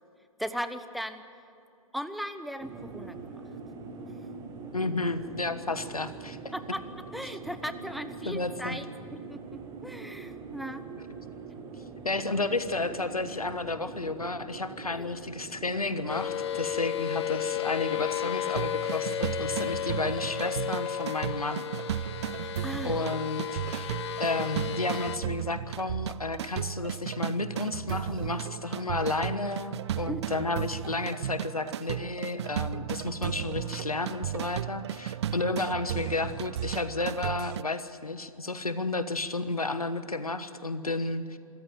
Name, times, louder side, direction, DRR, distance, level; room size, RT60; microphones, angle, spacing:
voice 1, 0.4-1.2 1.9-3.4 6.5-6.8 7.1-8.9 9.1-10.8 14.9-15.1 22.4-23.0 30.1-30.2, equal, ahead, 11 dB, 0.9 m, -37 dB
sound 1, 2.6-21.0, right 4 dB, 20° right, 2.1 m, -44 dB
voice 2, 4.7-6.4 8.2-8.8 12.0-21.7 22.8-23.9 24.2-41.4, left 3 dB, 90° left, 11 dB, 1.4 m, -32 dB
sound 2, 16.1-25.2, left 9 dB, 50° left, 0.9 m, -33 dB
sound 3, 18.5-37.6, right 11 dB, 50° right, 0.4 m, -35 dB
25.5 x 14.5 x 9.1 m, 2.7 s
figure-of-eight pair, 120°, 18 cm